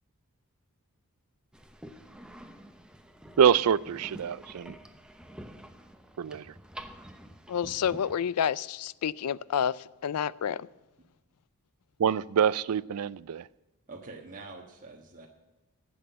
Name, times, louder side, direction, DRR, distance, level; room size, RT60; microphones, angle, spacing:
sound 1, 1.5-8.1, equal, 5° right, 0.8 m, -48 dB
voice 1, 3.4-4.7 6.2-6.4 12.0-13.4, right 8 dB, 70° right, 0.4 m, -25 dB
voice 2, 7.5-10.7, left 8 dB, 90° left, 0.4 m, -29 dB
voice 3, 13.9-15.3, right 3 dB, 40° right, 1.3 m, -45 dB
11.0 x 8.0 x 8.6 m
head